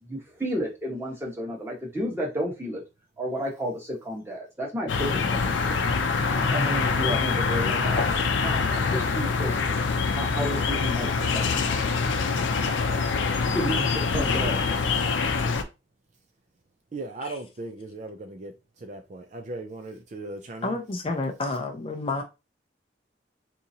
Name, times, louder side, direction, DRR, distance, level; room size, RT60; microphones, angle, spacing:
voice 1, 0.0-2.8 3.2-5.8 6.3-9.6 10.1-12.1 12.7-12.8 13.1-15.0, equal, 15° right, 1.2 m, -32 dB
sound 1, 4.9-15.6, left 4 dB, 90° left, 0.5 m, -25 dB
voice 2, 16.9-20.8, right 2 dB, 40° right, 0.4 m, -38 dB
voice 3, 20.6-22.2, left 3 dB, 30° left, 0.5 m, -29 dB
3.8 x 2.9 x 2.7 m
head